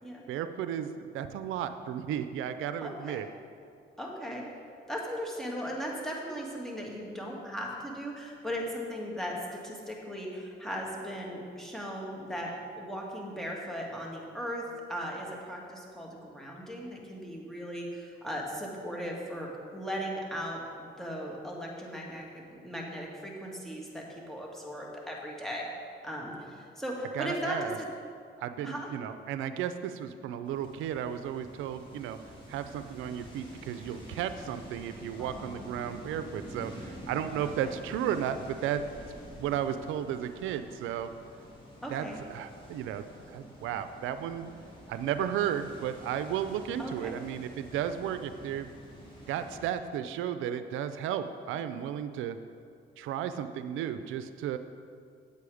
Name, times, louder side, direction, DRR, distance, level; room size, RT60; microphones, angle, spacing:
voice 1, 0.3-3.3 27.1-27.8 28.4-32.2 32.5-38.8 39.4-41.1 41.9-44.5 44.9-48.7 49.3-52.4 53.0-54.6, right 9 dB, 90° right, 10 dB, 0.5 m, -34 dB
voice 2, 2.8-3.2 4.0-4.5 4.9-25.7 26.0-27.9 28.6-28.9 35.2-35.7 37.6-37.7 41.8-42.2 46.8-47.2, equal, ahead, -2 dB, 2.0 m, -38 dB
sound 1, 30.4-49.6, equal, 25° left, 2.7 m, -48 dB
8.4 x 8.4 x 4.9 m, 2.3 s
cardioid pair, 90°, 20 cm